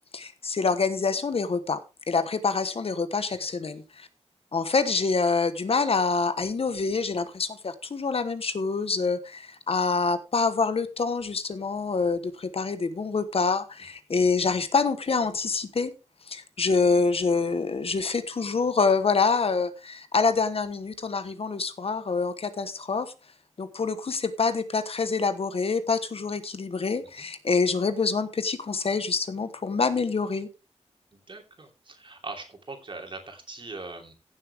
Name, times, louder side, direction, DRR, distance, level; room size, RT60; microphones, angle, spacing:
voice 1, 0.1-1.8 2.1-4.1 4.5-15.9 16.3-23.1 23.6-30.5, left 4 dB, 55° left, 11 dB, 1.1 m, -26 dB
voice 2, 31.1-34.1, right 3 dB, 45° right, 3 dB, 2.9 m, -41 dB
16.0 x 7.3 x 3.5 m, 0.29 s
wide cardioid pair, 120°, 12 cm